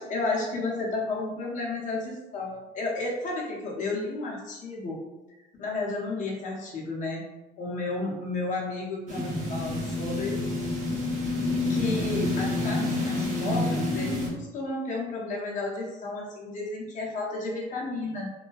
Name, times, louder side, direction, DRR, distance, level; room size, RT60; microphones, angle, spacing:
voice 1, 0.0-5.0 5.6-7.2 7.6-10.4 11.7-18.3, left 2 dB, 50° left, -3 dB, 0.7 m, -32 dB
sound 1, 9.1-14.3, left 2 dB, 45° right, 0.7 m, -28 dB
2.3 x 2.1 x 2.5 m, 1.1 s
cardioid pair, 110°, 17 cm